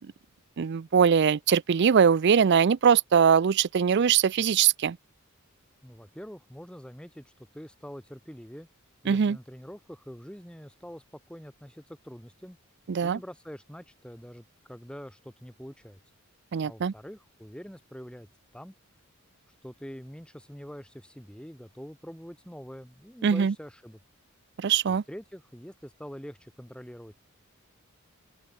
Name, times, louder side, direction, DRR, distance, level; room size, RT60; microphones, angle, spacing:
voice 1, 0.6-5.0 9.1-9.4 12.9-13.2 16.5-16.9 23.2-23.5 24.6-25.0, right 7 dB, 55° right, 0.4 m, -22 dB
voice 2, 5.8-8.7 9.0-12.6 13.0-16.0 16.6-18.3 18.5-18.7 19.6-24.0 24.9-27.1, equal, 5° left, 6.5 m, -44 dB
open air
head